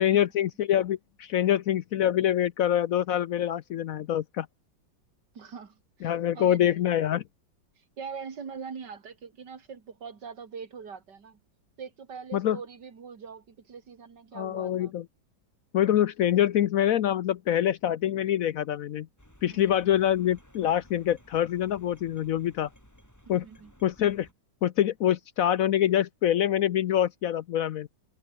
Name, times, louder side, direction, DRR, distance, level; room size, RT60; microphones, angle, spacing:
voice 1, 0.0-4.5 6.0-7.2 12.3-12.6 14.3-15.0 15.7-19.1 19.4-22.7 23.3-23.4 23.8-24.3 24.6-27.9, left 11 dB, 75° left, 0.8 m, -25 dB
voice 2, 5.3-6.8 7.8-11.4 11.8-15.0 19.5-19.8 23.3-23.7, right 6 dB, 60° right, 2.8 m, -43 dB
sound 1, 19.2-24.3, equal, 10° left, 5.4 m, -57 dB
omnidirectional pair, 2.2 m